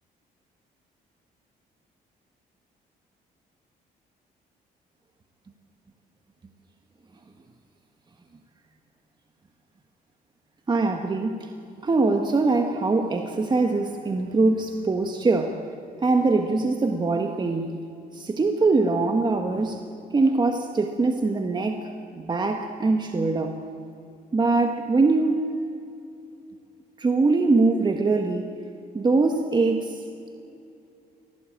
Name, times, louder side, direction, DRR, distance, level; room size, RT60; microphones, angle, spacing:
voice 1, 10.7-11.5 11.8-15.6 16.0-17.7 18.1-19.8 20.1-21.9 22.1-23.6 24.3-25.5 27.0-28.5 28.9-30.0, right 3 dB, 25° right, 5 dB, 1.5 m, -22 dB
24.0 x 17.5 x 8.8 m, 2.6 s
cardioid pair, 105°, 16 cm